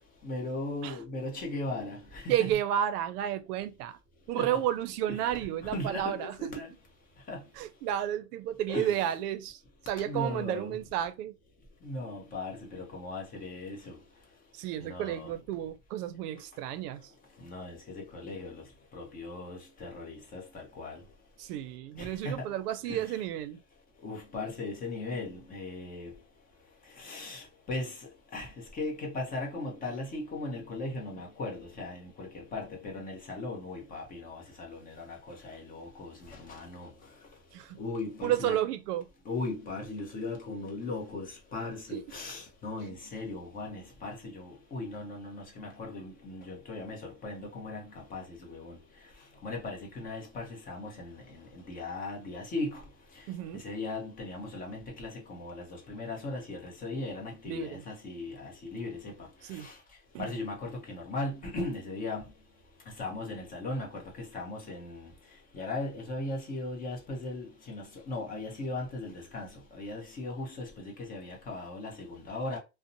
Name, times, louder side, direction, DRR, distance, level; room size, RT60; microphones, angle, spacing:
voice 1, 0.2-2.5 4.4-4.6 5.1-6.7 7.3-7.4 8.7-9.0 10.0-10.8 11.8-14.0 14.8-15.3 17.4-18.6 18.9-21.0 22.0-22.5 22.9-23.1 24.0-26.1 27.0-28.0 28.3-36.9 37.8-38.6 39.3-48.8 49.4-52.8 53.5-59.1 59.5-59.7 60.2-62.2 63.0-65.1 65.5-72.6, left 2 dB, 20° left, 0.7 m, -38 dB
voice 2, 2.3-4.0 4.3-6.5 7.6-9.6 9.9-11.3 14.6-17.1 21.4-23.6 37.5-37.8 38.2-39.1 41.9-42.0 53.3-53.6 57.5-57.8 59.4-59.7 60.1-60.3, right 11 dB, 70° right, 0.6 m, -32 dB
2.6 x 2.1 x 2.5 m
supercardioid pair, 140°, 48 cm